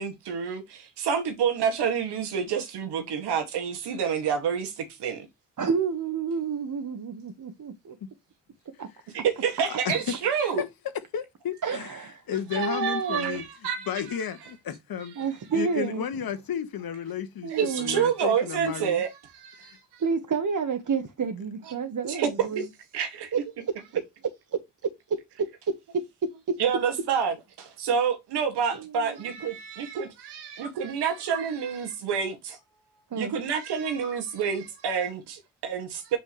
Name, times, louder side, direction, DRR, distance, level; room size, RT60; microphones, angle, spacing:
voice 1, 0.0-5.3 9.1-10.6 12.5-13.9 17.5-19.1 19.3-19.7 22.1-22.6 22.9-23.3 26.6-32.6 33.2-36.2, right 7 dB, 70° right, 2.1 m, -28 dB
voice 2, 5.6-8.0 8.8-8.9 11.6-12.2 12.6-13.4 15.2-16.0 17.4-18.0 20.0-22.7 23.3-24.0 24.5-24.6 28.8-29.2 33.1-33.4, right 5 dB, 45° right, 1.5 m, -30 dB
voice 3, 9.6-10.1 10.4-10.5 11.1-11.9 12.3-13.5 13.9-15.2 15.5-17.5 17.8-19.0 19.6-19.8, left 8 dB, 55° left, 1.6 m, -33 dB
8.4 x 5.5 x 3.2 m
hypercardioid pair, 40°, 42 cm